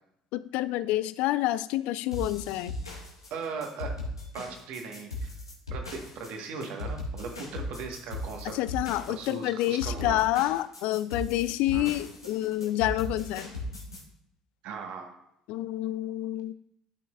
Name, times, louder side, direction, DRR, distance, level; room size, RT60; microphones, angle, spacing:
voice 1, 0.3-2.7 8.5-13.5 15.5-16.5, left 15 dB, 60° left, 16 dB, 0.3 m, -28 dB
sound 1, 2.1-14.0, left 1 dB, 90° left, 1.2 m, -37 dB
voice 2, 3.3-4.0 4.3-5.3 5.7-8.5 9.1-10.2 11.7-11.9 14.6-15.1, right 5 dB, 60° right, 3 dB, 1.4 m, -38 dB
11.5 x 6.1 x 2.4 m, 0.76 s
figure-of-eight pair, 55°, 2 cm